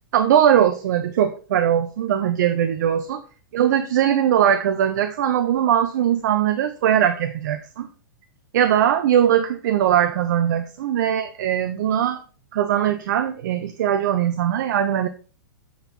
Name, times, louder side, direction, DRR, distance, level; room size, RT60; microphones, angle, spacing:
voice 1, 0.1-3.2 3.5-7.9 8.5-12.2 12.5-15.1, right 10 dB, 55° right, 0.8 m, -20 dB
9.0 x 5.7 x 4.3 m
figure-of-eight pair, 105°, 11 cm